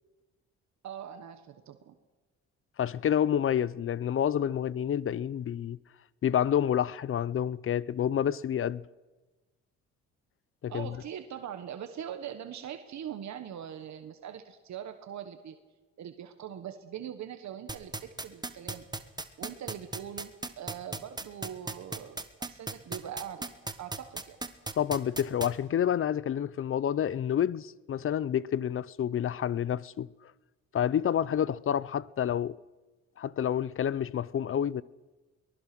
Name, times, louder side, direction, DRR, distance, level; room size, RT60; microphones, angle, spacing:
voice 1, 0.8-1.9 10.7-15.6 16.0-18.9 19.4-23.5 23.8-24.4, right 9 dB, 65° right, 1.4 m, -42 dB
voice 2, 2.8-5.8 6.2-8.8 10.6-10.9 24.8-30.1 30.7-32.6 33.2-34.8, left 9 dB, 45° left, 0.6 m, -28 dB
sound 1, 17.7-25.5, right 3 dB, 15° right, 1.4 m, -35 dB
22.5 x 19.5 x 6.1 m
cardioid pair, 90°, 30 cm